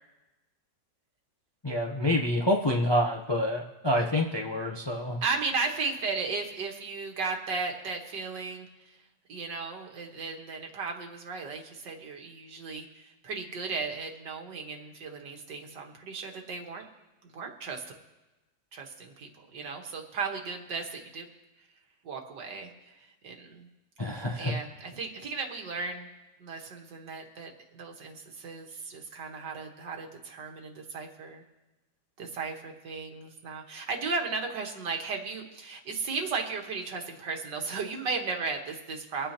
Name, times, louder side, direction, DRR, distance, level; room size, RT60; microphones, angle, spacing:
voice 1, 1.6-5.2 24.0-24.5, left 1 dB, 30° left, 1 dB, 0.4 m, -27 dB
voice 2, 5.2-8.9 9.3-16.8 17.2-17.8 18.7-21.3 22.0-23.7 24.3-26.1 26.4-31.4 32.2-39.3, right 4 dB, 85° right, 2 dB, 2.1 m, -35 dB
24.0 x 9.3 x 2.9 m, 1.1 s
omnidirectional pair, 1.9 m